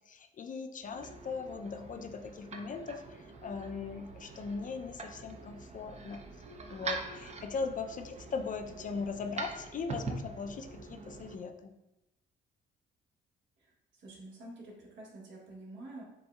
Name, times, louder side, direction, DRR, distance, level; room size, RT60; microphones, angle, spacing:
voice 1, 0.0-6.3 6.7-11.7, left 5 dB, 40° left, 6 dB, 0.4 m, -39 dB
sound 1, 0.8-11.4, right 3 dB, 35° right, 0.5 m, -44 dB
voice 2, 13.6-16.0, right 2 dB, 75° right, -3 dB, 1.5 m, -48 dB
7.0 x 2.7 x 2.3 m, 0.95 s
cardioid pair, 90°, 20 cm